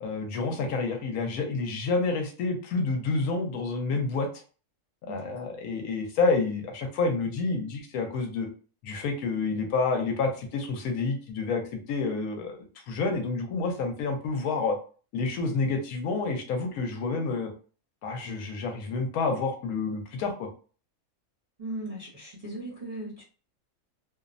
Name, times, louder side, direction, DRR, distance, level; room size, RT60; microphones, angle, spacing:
voice 1, 0.0-4.3 5.0-8.5 8.8-14.8 15.1-17.5 18.0-20.5, left 3 dB, 80° left, 4 dB, 1.1 m, -29 dB
voice 2, 21.6-23.2, right 1 dB, 35° right, -9 dB, 0.6 m, -38 dB
2.8 x 2.0 x 2.4 m, 0.39 s
omnidirectional pair, 1.5 m